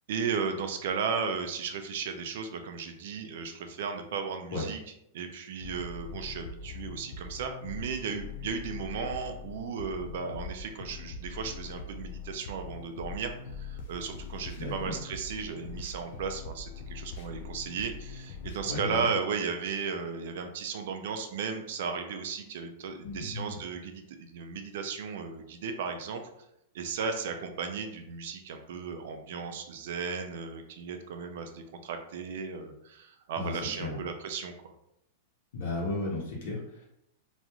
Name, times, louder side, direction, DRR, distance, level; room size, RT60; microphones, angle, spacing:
voice 1, 0.1-4.8 5.1-26.2 26.7-34.5, right 5 dB, 65° right, 5 dB, 0.4 m, -35 dB
sound 1, 5.6-18.6, left 4 dB, 55° left, 0.3 m, -42 dB
voice 2, 14.6-14.9 18.6-19.1 23.0-23.5 33.4-34.0 35.5-36.9, left 2 dB, 70° left, -4 dB, 1.0 m, -34 dB
3.0 x 2.4 x 2.3 m, 0.79 s
supercardioid pair, 155°, 0 cm